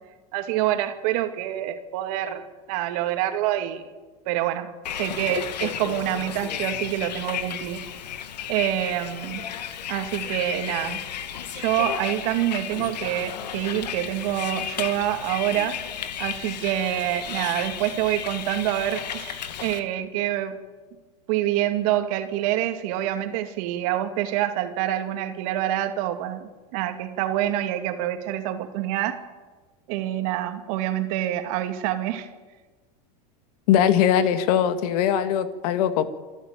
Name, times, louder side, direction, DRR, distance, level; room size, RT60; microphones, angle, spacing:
voice 1, 0.3-3.8 4.3-4.7 4.9-7.8 8.5-9.4 9.9-11.0 11.5-15.8 16.2-20.6 21.3-29.2 29.9-32.3, right 13 dB, 60° right, 7 dB, 2.5 m, -26 dB
Bus, 4.8-19.8, left 9 dB, 90° left, 1.9 m, -33 dB
voice 2, 33.7-36.1, left 9 dB, 65° left, 11 dB, 1.9 m, -21 dB
27.5 x 12.0 x 9.3 m, 1.3 s
supercardioid pair, 115°, 21 cm